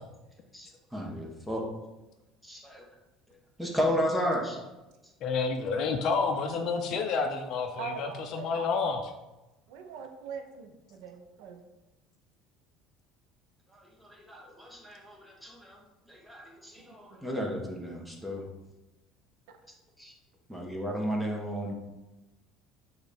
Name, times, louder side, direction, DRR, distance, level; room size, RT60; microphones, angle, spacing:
voice 1, 0.5-1.6 2.4-2.8 3.6-4.6 13.7-15.8 16.1-18.5 20.0-20.1 20.5-21.7, equal, 5° right, -1 dB, 1.0 m, -33 dB
voice 2, 5.2-9.0, left 5 dB, 55° left, 4 dB, 0.4 m, -29 dB
voice 3, 7.8-8.7 9.7-11.6 16.8-17.4 20.5-20.6, right 6 dB, 80° right, 6 dB, 0.5 m, -42 dB
6.2 x 2.4 x 3.5 m, 1.0 s
supercardioid pair, 115°, 0 cm